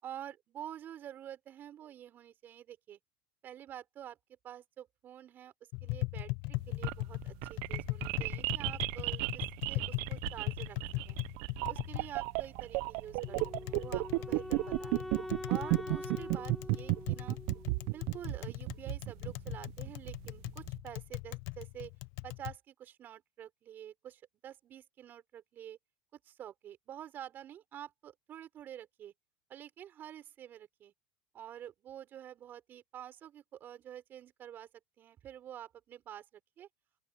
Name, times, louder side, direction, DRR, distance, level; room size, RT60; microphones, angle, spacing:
voice 1, 0.0-3.0 3.4-4.2 4.4-5.5 5.8-10.8 11.1-11.2 11.7-13.4 13.6-15.0 15.5-17.4 17.9-21.9 22.2-25.8 26.2-29.1 29.5-30.9 31.3-34.7 35.0-36.7, right 10 dB, 40° right, 6.4 m, -48 dB
Tap, 5.7-22.5, left 25 dB, 60° left, 0.8 m, -40 dB
sound 1, 6.6-20.7, right 26 dB, 60° right, 0.7 m, -34 dB
Wind instrument woodwind instrument, 13.2-18.3, left 1 dB, 5° left, 1.0 m, -44 dB
open air
hypercardioid pair, 100°, 5 cm